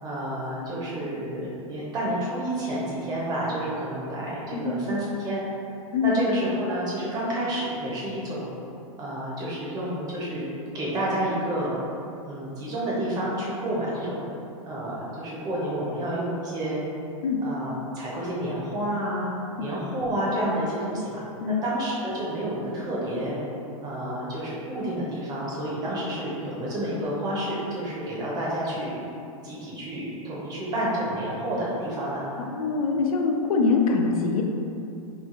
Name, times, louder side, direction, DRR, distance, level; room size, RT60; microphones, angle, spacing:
voice 1, 0.0-5.4 6.0-8.5 9.0-10.5 10.7-11.8 12.2-14.2 14.6-16.8 17.4-23.4 23.8-29.0 29.4-32.2, right 1 dB, 20° right, -6 dB, 0.7 m, -30 dB
voice 2, 32.4-34.4, left 4 dB, 75° left, 2 dB, 0.5 m, -24 dB
3.1 x 2.3 x 3.6 m, 2.7 s
hypercardioid pair, 150°, 19 cm